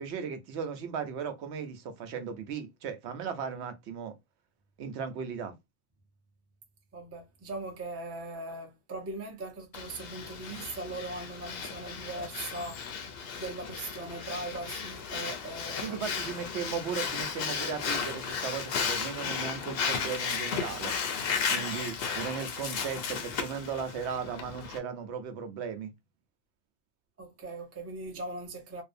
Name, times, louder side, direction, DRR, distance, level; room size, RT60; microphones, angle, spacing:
voice 1, 0.0-4.1 4.8-5.5 15.8-20.9 21.5-25.9, right 6 dB, 75° right, 0.9 m, -36 dB
voice 2, 6.9-16.0 21.5-22.3 27.2-28.8, right 2 dB, 20° right, 0.4 m, -40 dB
Breathing, 9.7-24.8, left 6 dB, 65° left, 0.7 m, -34 dB
2.6 x 2.0 x 2.4 m
omnidirectional pair, 1.2 m